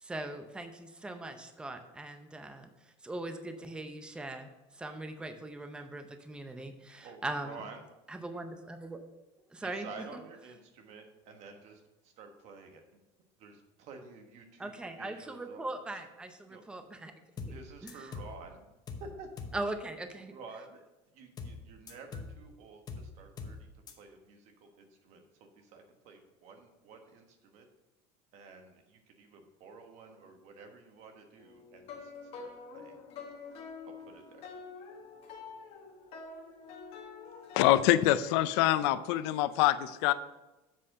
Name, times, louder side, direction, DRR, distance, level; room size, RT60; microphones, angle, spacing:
voice 1, 0.0-7.6 8.1-9.0 9.5-9.9 14.6-17.1 17.5-17.6 17.8-18.1 19.5-20.3, right 2 dB, 5° right, 7 dB, 0.6 m, -40 dB
voice 2, 7.0-7.8 9.6-13.0 13.4-15.7 16.5-16.6 17.4-18.7 19.0-19.3 20.2-20.8 21.1-27.7 28.3-33.0 33.8-34.5, right 4 dB, 55° right, 5 dB, 1.3 m, -51 dB
sound 1, 17.4-17.6 17.9-18.4 18.9-19.1 19.4-19.6 21.4-21.6 21.9-22.4 22.9-23.1 23.4-23.6 23.9-24.0, left 4 dB, 30° left, 0.9 m, -42 dB
sound 2, 31.4-38.1, left 5 dB, 45° left, 1.2 m, -47 dB
voice 3, 37.5-40.1, left 14 dB, 80° left, 14 dB, 0.5 m, -25 dB
7.5 x 4.2 x 6.4 m, 1.0 s
cardioid pair, 140°, 14 cm